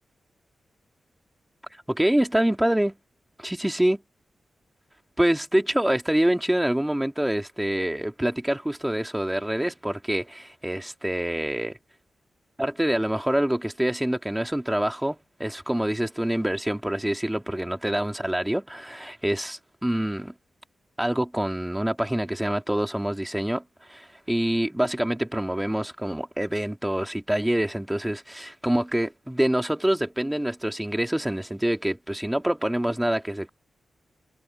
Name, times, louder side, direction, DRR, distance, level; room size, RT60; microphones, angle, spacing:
voice 1, 1.9-3.0 3.4-4.0 5.2-11.8 12.6-20.3 21.0-23.6 23.9-33.5, right 1 dB, 10° right, 2.6 m, -26 dB
cardioid pair, 80°, 0 cm